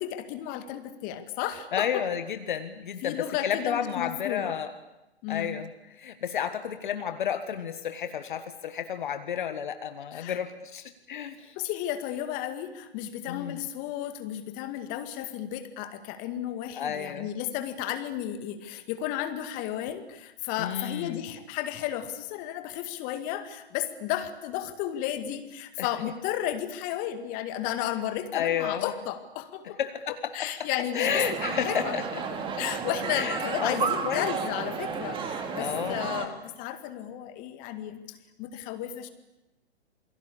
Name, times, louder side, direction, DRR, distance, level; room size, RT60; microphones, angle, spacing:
voice 1, 0.0-2.0 3.0-4.5 5.2-5.5 10.1-10.4 11.6-29.8 30.3-32.0 32.6-39.1, left 11 dB, 25° left, 10 dB, 2.1 m, -33 dB
voice 2, 1.7-4.7 5.3-11.5 13.3-13.6 16.7-17.3 20.6-21.2 25.8-25.9 28.3-28.9 29.8-30.7 30.9-32.0 33.1-34.2 35.5-36.1, left 8 dB, 50° left, 10 dB, 1.7 m, -31 dB
sound 1, 31.0-36.3, right 6 dB, 15° right, 2.6 m, -32 dB
28.0 x 22.0 x 8.6 m, 0.96 s
figure-of-eight pair, 125°, 33 cm